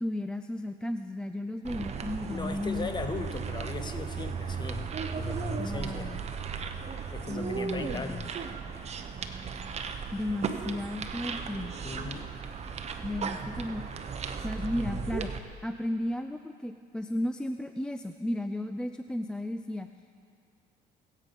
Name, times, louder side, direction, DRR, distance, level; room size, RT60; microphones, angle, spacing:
voice 1, 0.0-2.9 5.6-6.2 7.3-8.3 9.8-11.8 13.0-13.9 14.4-15.3 15.6-19.9, left 1 dB, 5° left, 8 dB, 0.4 m, -34 dB
sound 1, 1.6-15.4, right 6 dB, 40° right, 0.8 m, -36 dB
voice 2, 2.3-6.2 7.1-8.3 11.8-12.3 14.8-15.1, left 4 dB, 25° left, 8 dB, 0.9 m, -38 dB
20.0 x 8.3 x 5.3 m, 2.4 s
cardioid pair, 110°, 17 cm